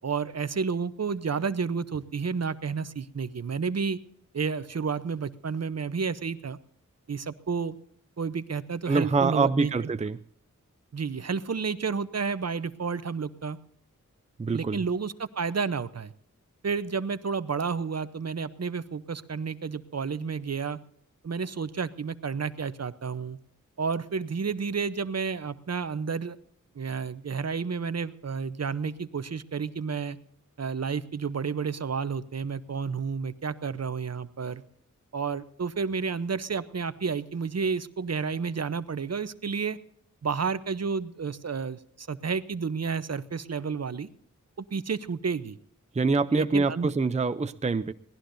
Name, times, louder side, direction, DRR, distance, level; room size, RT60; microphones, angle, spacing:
voice 1, 0.0-4.0 4.3-6.6 7.1-7.8 8.2-9.7 10.9-13.6 14.5-16.1 16.6-20.8 21.2-23.4 23.8-26.4 26.7-30.2 30.6-34.6 35.1-39.8 40.2-44.1 44.6-45.6 46.3-46.9, right 5 dB, 55° right, 14 dB, 0.8 m, -31 dB
voice 2, 8.9-10.2 14.4-14.8 45.9-47.9, right 4 dB, 20° right, 11 dB, 0.5 m, -25 dB
23.0 x 17.5 x 2.6 m, 0.66 s
wide cardioid pair, 60°, 32 cm